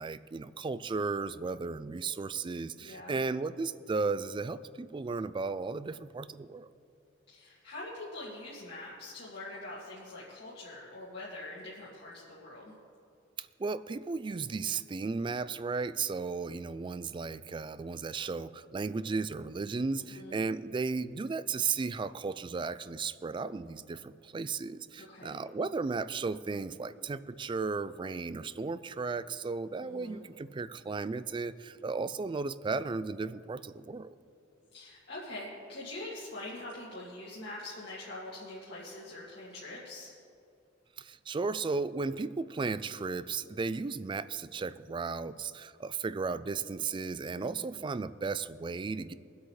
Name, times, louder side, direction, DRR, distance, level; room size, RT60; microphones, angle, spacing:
voice 1, 0.0-6.7 13.4-34.2 41.0-49.1, right 4 dB, 25° right, 15 dB, 0.3 m, -35 dB
voice 2, 2.8-3.2 7.3-12.7 19.9-20.4 25.1-25.4 29.8-30.2 34.7-40.1 47.3-47.7, left 2 dB, 60° left, -8 dB, 2.1 m, -44 dB
23.0 x 8.1 x 3.2 m, 2.5 s
head